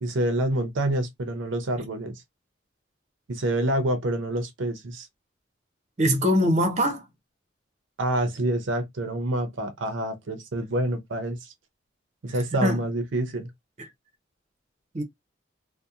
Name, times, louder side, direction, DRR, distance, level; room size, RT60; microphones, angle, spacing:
voice 1, 0.0-2.2 3.3-5.1 8.0-11.5 12.2-13.5, right 1 dB, 80° right, 0.6 m, -27 dB
voice 2, 6.0-7.0 12.3-12.8 14.9-15.0, equal, 35° right, 0.6 m, -23 dB
2.7 x 2.1 x 2.4 m
head